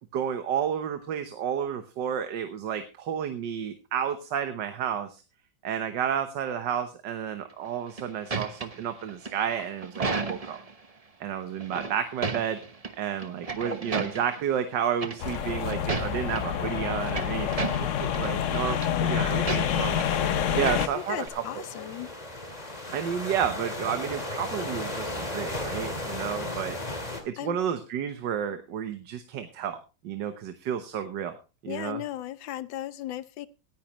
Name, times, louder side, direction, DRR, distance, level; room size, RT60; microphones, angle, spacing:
voice 1, 0.1-5.2 5.6-10.6 11.2-12.6 13.0-17.6 18.0-20.0 20.5-21.6 22.9-29.8 30.0-31.4 31.6-32.0, right 8 dB, 70° right, 9 dB, 1.6 m, -31 dB
sound 1, 7.6-10.7 11.6-12.9 13.2-14.4 15.0-15.4 15.7-16.4 16.8-18.3 18.5-18.9 19.5-20.2 20.5-21.3, right 4 dB, 30° right, 0.7 m, -33 dB
sound 2, 15.2-20.9, left 9 dB, 60° left, 0.8 m, -27 dB
voice 2, 18.4-19.6 20.6-22.1 27.4-27.6 31.7-33.5, left 13 dB, 80° left, 16 dB, 1.5 m, -37 dB
sound 3, 20.0-27.2, left 1 dB, 20° left, 2.1 m, -35 dB
17.5 x 10.5 x 3.0 m, 0.30 s
omnidirectional pair, 2.1 m